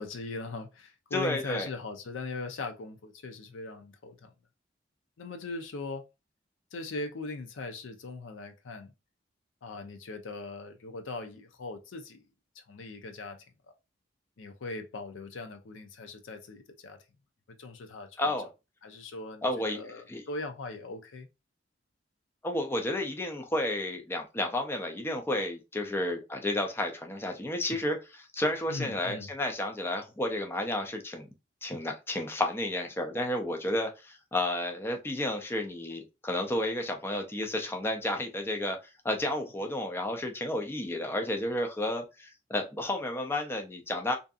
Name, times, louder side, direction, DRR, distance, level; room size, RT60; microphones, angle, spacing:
voice 1, 0.0-4.3 5.2-6.0 6.7-8.9 9.6-12.3 12.7-13.4 14.4-17.0 17.6-18.3 18.8-21.3 28.7-29.3, left 3 dB, 85° left, 0.5 m, -40 dB
voice 2, 1.1-1.7 18.2-18.5 19.4-20.2 22.4-31.3 31.6-38.8 39.0-44.1, left 1 dB, 15° left, 0.4 m, -31 dB
2.6 x 2.4 x 2.3 m
head